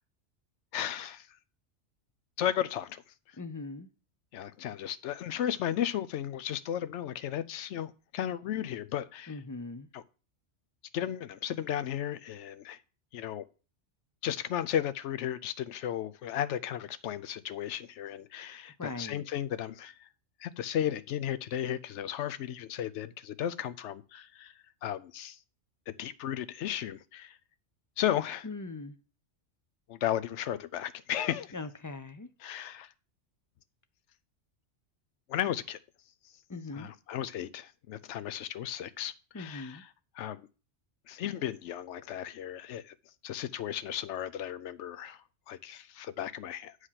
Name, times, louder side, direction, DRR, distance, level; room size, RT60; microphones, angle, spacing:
voice 1, 0.7-1.3 2.4-3.0 4.3-9.4 9.9-10.0 10.9-12.8 13.1-13.4 14.2-19.9 20.4-24.5 24.8-25.4 25.9-27.4 28.0-28.5 29.9-31.5 32.4-32.9 35.3-35.8 36.7-39.9 40.2-40.5 41.1-42.9 43.2-45.2 45.5-46.8, left 10 dB, 75° left, 0.9 m, -34 dB
voice 2, 3.4-3.9 9.3-9.9 18.8-19.2 28.4-28.9 31.5-32.3 36.5-36.9 39.3-39.8, left 3 dB, 30° left, 0.3 m, -40 dB
8.2 x 4.9 x 5.7 m
omnidirectional pair, 1.2 m